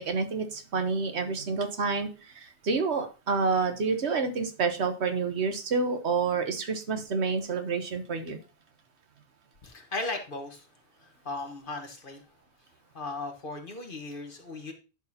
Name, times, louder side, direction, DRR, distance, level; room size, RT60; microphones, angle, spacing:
voice 1, 0.0-8.4, right 4 dB, 80° right, 7 dB, 1.4 m, -28 dB
voice 2, 9.6-10.7 11.0-12.2 12.9-14.7, left 2 dB, 50° left, 4 dB, 1.6 m, -37 dB
10.5 x 6.3 x 2.8 m, 0.32 s
omnidirectional pair, 1.1 m